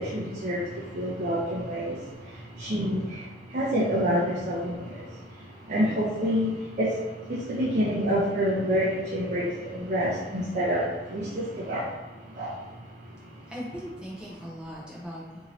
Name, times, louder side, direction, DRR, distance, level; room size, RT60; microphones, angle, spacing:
voice 1, 0.0-5.4 5.7-11.9 12.3-12.6, equal, 45° right, -7 dB, 0.7 m, -28 dB
voice 2, 13.5-15.5, equal, 5° right, -7 dB, 0.7 m, -39 dB
4.2 x 2.7 x 3.1 m, 1.2 s
head